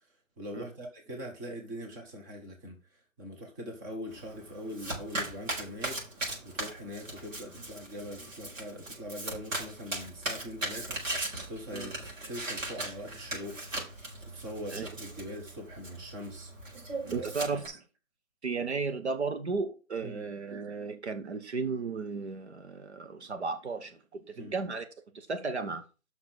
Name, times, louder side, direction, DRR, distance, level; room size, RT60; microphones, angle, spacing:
voice 1, 0.4-2.8 3.2-6.0 6.4-11.0 11.5-13.6 14.2-16.5 17.0-17.3 20.0-20.2 24.4-24.5, equal, 15° right, 1.2 m, -42 dB
Domestic sounds home sounds, 4.1-17.7, right 2 dB, 70° right, 4.5 m, -39 dB
voice 2, 17.1-17.8 18.4-24.9 25.1-25.8, right 4 dB, 55° right, 1.0 m, -34 dB
5.9 x 5.8 x 6.0 m
figure-of-eight pair, 155°, 40 cm